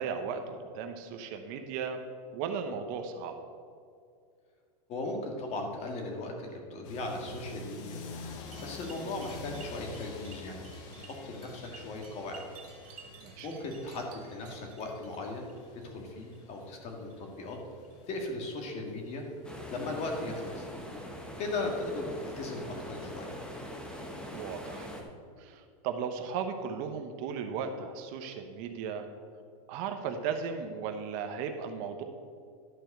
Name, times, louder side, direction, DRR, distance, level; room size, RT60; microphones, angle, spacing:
voice 1, 0.0-2.0 2.3-3.4 13.2-13.6 24.3-24.9 25.4-29.1 29.7-32.0, right 6 dB, 45° right, 6 dB, 0.9 m, -36 dB
voice 2, 4.9-8.0 8.6-12.4 13.4-15.5 15.8-17.6 18.1-19.2 19.7-20.7 21.4-23.3, left 2 dB, 35° left, 2 dB, 1.9 m, -37 dB
sound 1, 6.8-20.1, left 3 dB, 55° left, 1.3 m, -48 dB
sound 2, 8.5-15.9 16.2-16.6 17.0-17.3 17.8-18.0 18.7-18.8 19.5-19.6 20.3-20.4, right 5 dB, 80° right, 2.1 m, -54 dB
sound 3, 19.4-25.0, equal, 5° left, 1.0 m, -43 dB
11.5 x 4.5 x 6.7 m, 2.3 s
supercardioid pair, 140°, 20 cm